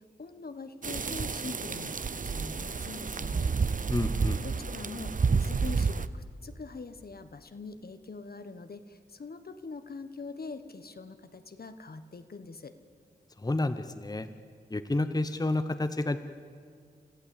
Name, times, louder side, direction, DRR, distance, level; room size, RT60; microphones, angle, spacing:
voice 1, 0.0-3.5 4.4-12.7, left 4 dB, 55° left, 9 dB, 1.2 m, -43 dB
sound 1, 0.8-6.1, right 5 dB, 45° right, 0.7 m, -30 dB
voice 2, 3.9-4.4 13.4-14.3 14.7-16.2, left 2 dB, 20° left, 10 dB, 0.9 m, -30 dB
29.5 x 14.0 x 8.5 m, 2.2 s
cardioid pair, 60°, 19 cm